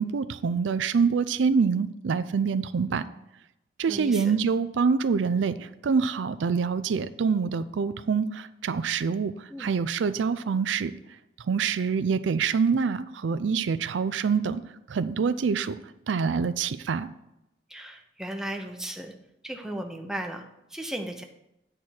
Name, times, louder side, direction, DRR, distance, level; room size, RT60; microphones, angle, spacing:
voice 1, 0.0-3.0 3.8-10.9 11.5-14.6 14.9-15.8 16.1-17.1, right 5 dB, 80° right, 14 dB, 0.4 m, -26 dB
voice 2, 3.9-4.3 9.5-9.7 17.7-19.1 19.4-20.5 20.7-21.2, right 1 dB, 5° right, 3 dB, 0.8 m, -35 dB
9.1 x 4.4 x 6.3 m, 0.88 s
head